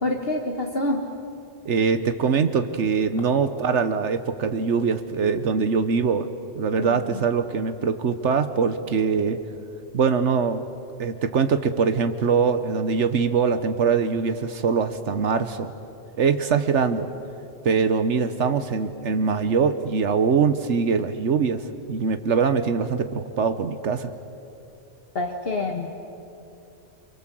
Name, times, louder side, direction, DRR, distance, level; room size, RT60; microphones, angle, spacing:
voice 1, 0.0-1.0 6.8-7.2 25.2-25.9, left 2 dB, 55° left, 2 dB, 1.7 m, -27 dB
voice 2, 1.6-6.3 6.6-9.4 9.9-10.6 11.0-15.7 16.2-17.1 17.6-24.1, right 5 dB, 75° right, 10 dB, 1.3 m, -23 dB
29.0 x 24.0 x 7.6 m, 2.7 s
omnidirectional pair, 1.2 m